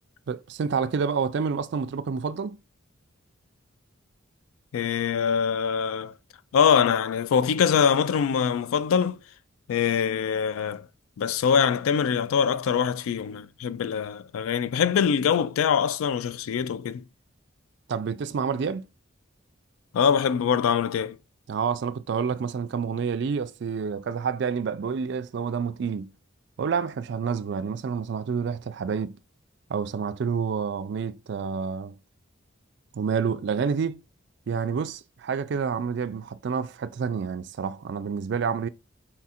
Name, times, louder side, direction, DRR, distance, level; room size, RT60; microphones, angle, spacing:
voice 1, 0.3-2.6 17.9-18.9 21.5-26.1 26.6-29.2 29.7-31.9 32.9-34.0 34.5-38.7, right 6 dB, 55° right, 0.3 m, -28 dB
voice 2, 4.7-6.1 6.5-9.2 9.7-10.9 11.2-17.0 19.9-21.2, left 7 dB, 85° left, 0.3 m, -23 dB
4.3 x 2.4 x 4.1 m
head